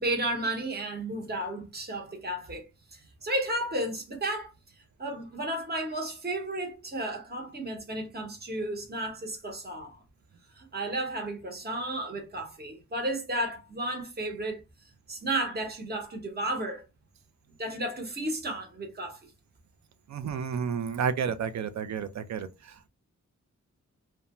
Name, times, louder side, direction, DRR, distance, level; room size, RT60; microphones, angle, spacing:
voice 1, 0.0-4.5 5.0-10.0 10.5-14.6 15.1-16.8 17.6-19.3, right 1 dB, 35° right, 0.9 m, -33 dB
voice 2, 20.1-22.9, right 7 dB, 70° right, 0.5 m, -31 dB
2.5 x 2.2 x 2.9 m
wide cardioid pair, 110°, 29 cm